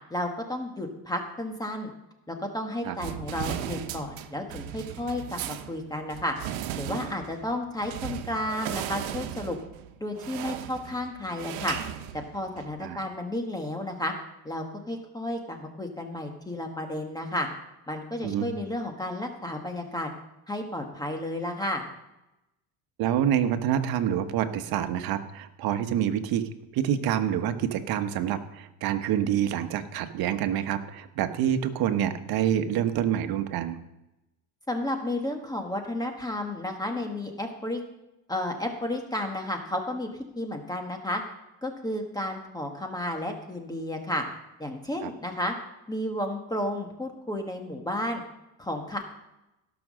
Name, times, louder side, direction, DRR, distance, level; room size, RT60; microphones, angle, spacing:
voice 1, 0.1-1.9 2.3-6.3 6.7-9.6 10.0-11.8 12.1-14.1 14.4-17.5 17.9-20.1 20.5-21.8 34.7-37.8 38.3-40.1 40.3-41.2 41.6-44.2 44.6-45.5 45.9-48.2 48.6-49.1, left 1 dB, 10° left, 3 dB, 1.5 m, -32 dB
sound 1, 3.0-12.8, right 11 dB, 85° right, 1.1 m, -37 dB
voice 2, 23.0-33.8 45.0-45.1, right 10 dB, 60° right, 9 dB, 1.3 m, -27 dB
16.5 x 6.2 x 6.3 m, 0.93 s
cardioid pair, 120°, 41 cm